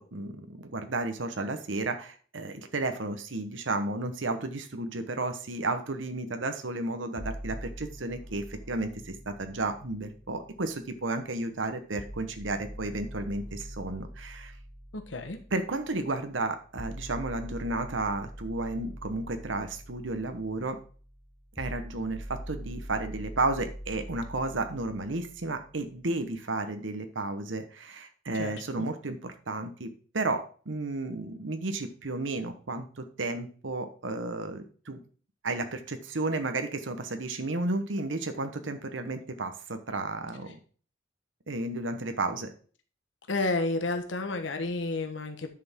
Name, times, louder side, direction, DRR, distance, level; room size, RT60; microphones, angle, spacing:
voice 1, 0.0-14.5 15.5-20.8 21.6-35.0 35.4-40.6 41.5-42.5, right 2 dB, 85° right, 7 dB, 1.1 m, -33 dB
sound 1, 7.2-11.2 12.0-26.0, equal, 5° right, 0.7 m, -44 dB
voice 2, 14.9-15.4 28.3-28.9 43.3-45.5, left 2 dB, 75° left, 6 dB, 1.2 m, -31 dB
10.5 x 6.8 x 3.7 m, 0.42 s
head